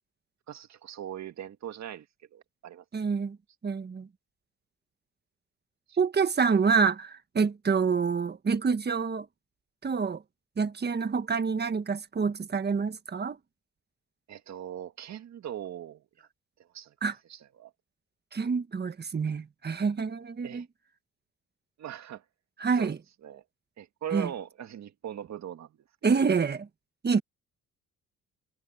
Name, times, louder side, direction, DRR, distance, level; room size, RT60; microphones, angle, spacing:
voice 1, 0.5-2.1 2.3-2.8 5.9-6.0 14.3-16.3 16.6-16.9 17.3-17.7 20.4-20.7 21.8-22.2 22.8-22.9 23.2-23.4 23.8-25.8, right 10 dB, 65° right, 2.0 m, -40 dB
voice 2, 2.9-3.4 3.6-4.1 6.0-9.3 9.8-10.2 10.6-13.4 17.0-17.1 18.3-20.6 22.6-23.0 24.1-24.3 26.0-26.7 27.0-27.2, right 5 dB, 35° right, 1.6 m, -27 dB
cardioid pair, 90°, 30 cm